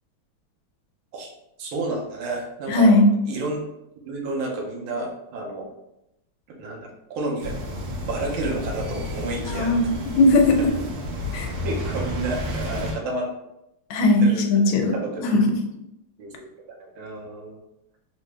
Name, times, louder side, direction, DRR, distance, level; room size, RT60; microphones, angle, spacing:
voice 1, 1.6-2.9 3.3-3.6 4.0-5.7 6.5-7.5 8.0-9.8 11.6-13.3 14.2-14.6 14.9-15.3 16.2-16.5 16.8-17.6, right 2 dB, 85° right, 0 dB, 1.5 m, -30 dB
voice 2, 2.7-3.1 9.5-10.6 11.3-11.5 13.9-15.4, left 2 dB, 80° left, 4 dB, 1.4 m, -18 dB
sound 1, 7.4-12.9, left 1 dB, 65° right, 1.4 m, -31 dB
3.8 x 2.0 x 3.2 m, 0.86 s
omnidirectional pair, 2.3 m